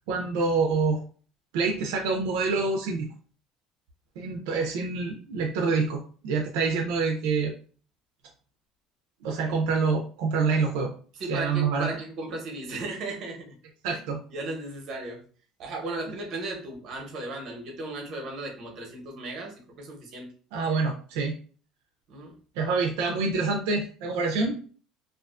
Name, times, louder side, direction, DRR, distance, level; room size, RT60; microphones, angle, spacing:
voice 1, 0.1-1.0 1.5-3.1 4.2-7.5 9.2-10.9 11.3-11.9 13.8-14.2 20.5-21.3 22.6-24.6, right 4 dB, 85° right, 1 dB, 0.4 m, -26 dB
voice 2, 11.1-13.5 13.9-14.0 14.3-15.2 15.6-20.3 22.1-22.3, right 2 dB, 50° right, 1 dB, 0.8 m, -36 dB
2.4 x 2.3 x 2.3 m, 0.41 s
cardioid pair, 130°, 0 cm